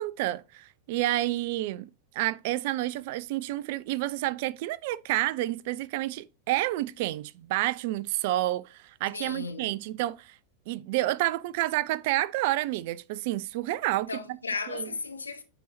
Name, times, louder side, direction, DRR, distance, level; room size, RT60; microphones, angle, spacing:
voice 1, 0.0-10.3 10.7-14.1 14.7-14.9, right 16 dB, 50° right, 0.3 m, -29 dB
voice 2, 9.1-9.7 14.1-15.4, left 4 dB, 75° left, 0.9 m, -35 dB
9.1 x 3.9 x 2.8 m
figure-of-eight pair, 90°, 0 cm